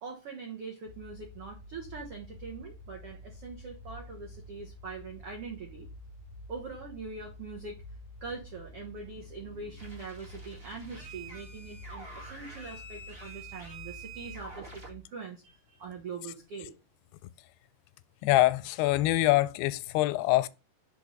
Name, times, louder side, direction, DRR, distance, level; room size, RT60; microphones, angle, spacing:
voice 1, 0.0-5.9 6.5-7.8 8.2-16.7, right 4 dB, 80° right, 1.3 m, -43 dB
sound 1, 0.8-15.0, left 1 dB, 55° right, 2.6 m, -49 dB
sound 2, 9.8-14.9, right 3 dB, 25° right, 1.3 m, -47 dB
voice 2, 18.2-20.5, left 16 dB, 90° left, 2.6 m, -24 dB
5.4 x 4.6 x 5.1 m
omnidirectional pair, 4.6 m